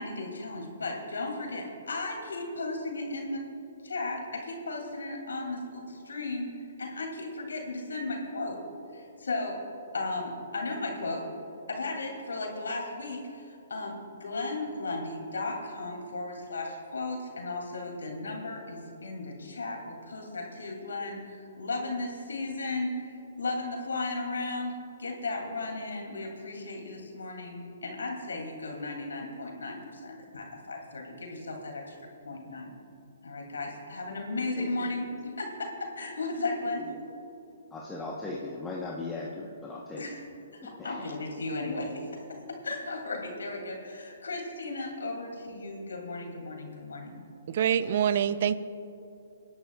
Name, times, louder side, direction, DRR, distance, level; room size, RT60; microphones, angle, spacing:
voice 1, 0.0-3.4 3.8-6.5 6.8-8.6 8.9-9.6 9.9-11.2 11.7-24.7 25.0-32.0 32.2-32.7 33.2-35.1 35.4-36.8 40.0-40.2 40.6-42.2 42.6-47.2, left 2 dB, 90° left, 1 dB, 2.7 m, -35 dB
voice 2, 37.7-40.0 40.8-41.1, left 3 dB, 10° left, -4 dB, 1.0 m, -38 dB
voice 3, 47.5-48.6, right 9 dB, 55° right, 14 dB, 0.5 m, -25 dB
26.0 x 10.5 x 2.4 m, 2.9 s
hypercardioid pair, 140°, 0 cm